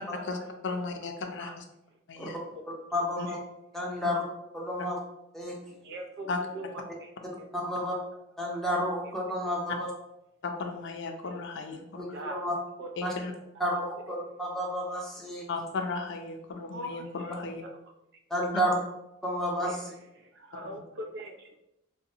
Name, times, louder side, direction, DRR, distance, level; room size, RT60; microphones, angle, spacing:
voice 1, 0.6-1.6 2.1-2.4 3.2-3.3 6.3-6.4 10.4-12.2 13.0-13.3 15.5-17.6, left 3 dB, 65° left, 4 dB, 0.4 m, -35 dB
voice 2, 2.9-3.4 3.7-4.2 4.5-5.0 5.3-5.6 7.5-7.9 8.4-9.9 12.0-12.5 13.0-13.1 13.6-15.5 18.3-18.7 19.2-19.9, equal, ahead, -3 dB, 0.6 m, -31 dB
voice 3, 5.8-6.7 7.0-7.1 7.4-7.5 11.3-11.4 12.1-12.5 12.8-12.9 16.7-17.1 19.6-19.8 20.2-21.6, right 1 dB, 60° right, 3 dB, 0.5 m, -41 dB
3.8 x 2.1 x 2.7 m, 0.84 s
head